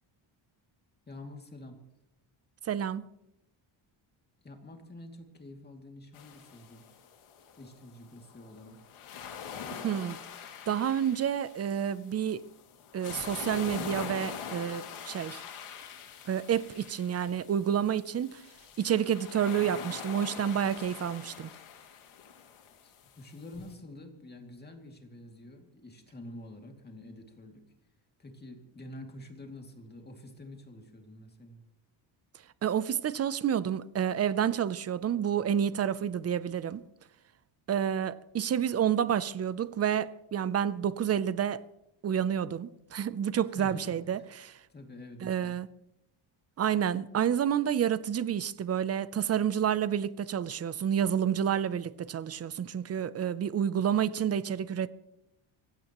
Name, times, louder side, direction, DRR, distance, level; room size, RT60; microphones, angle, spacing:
voice 1, 1.1-1.8 4.4-6.9 7.6-8.8 22.8-27.7 28.2-31.6 43.4-44.4 44.7-45.6, left 1 dB, 20° left, 2.5 m, -47 dB
voice 2, 2.7-3.0 9.7-10.2 10.7-12.4 12.9-15.4 16.3-18.4 18.8-21.5 32.6-36.8 37.7-41.6 42.0-44.6 45.2-45.7 46.6-54.9, right 9 dB, 30° right, 0.5 m, -29 dB
sound 1, 6.1-23.7, left 7 dB, 75° left, 2.5 m, -44 dB
24.5 x 16.0 x 3.0 m
cardioid pair, 155°, 50 cm